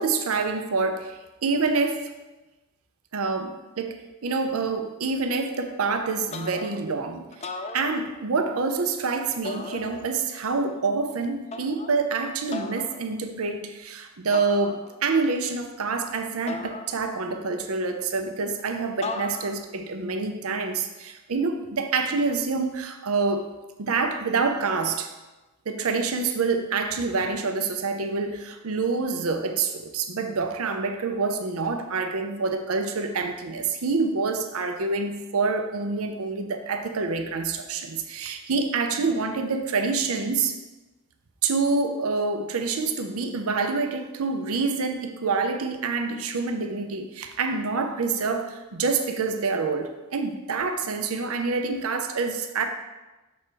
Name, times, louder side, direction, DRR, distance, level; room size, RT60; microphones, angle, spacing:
voice 1, 0.0-2.1 3.1-7.5 7.7-23.5 23.8-25.1 25.7-40.6 41.4-52.7, right 4 dB, 80° right, 6 dB, 0.6 m, -27 dB
sound 1, 6.3-6.9 7.3-8.5 9.4-10.3 11.5-12.0 12.5-13.0 14.3-15.2 16.5-17.4 19.0-19.8, left 4 dB, 30° left, 0.4 m, -37 dB
6.3 x 4.7 x 4.5 m, 1.1 s
head